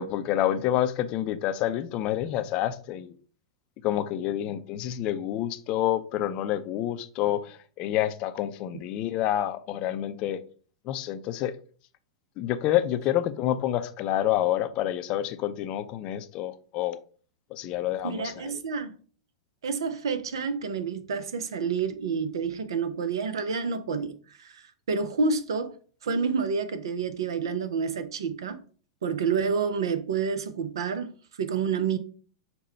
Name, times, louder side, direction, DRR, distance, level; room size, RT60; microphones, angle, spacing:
voice 1, 0.0-3.1 3.8-10.4 10.9-11.5 12.4-17.0 17.5-18.6, left 12 dB, 40° left, 0.5 m, -28 dB
voice 2, 18.0-18.9 19.6-25.7 26.0-28.6 29.0-31.1 31.4-32.0, right 5 dB, 70° right, 0.6 m, -29 dB
5.5 x 2.2 x 4.3 m
figure-of-eight pair, 100°, 3 cm